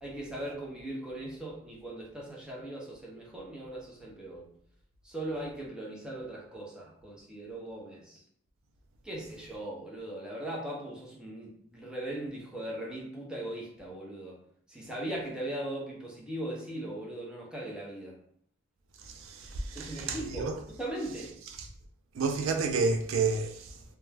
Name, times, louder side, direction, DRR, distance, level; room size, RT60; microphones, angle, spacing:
voice 1, 0.0-4.5 5.0-8.2 9.0-14.4 14.7-18.2 19.7-21.3, right 1 dB, 5° right, 0.5 m, -39 dB
voice 2, 19.0-20.6 21.5-21.7 22.1-23.8, right 4 dB, 65° right, 0.3 m, -30 dB
2.3 x 2.0 x 3.2 m
head